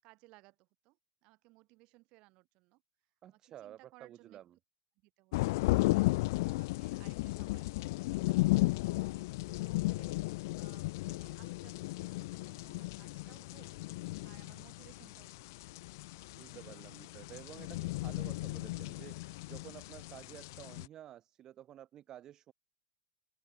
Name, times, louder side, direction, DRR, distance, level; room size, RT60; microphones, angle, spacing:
voice 1, 0.0-2.8 3.3-4.4 5.0-7.7 8.1-10.1 10.5-13.8 14.2-15.8, right 23 dB, 45° right, 6.5 m, -63 dB
voice 2, 3.2-4.6 16.3-22.5, right 11 dB, 30° right, 0.9 m, -52 dB
sound 1, 5.3-20.9, left 21 dB, 65° left, 0.4 m, -35 dB
open air
supercardioid pair, 150°, 2 cm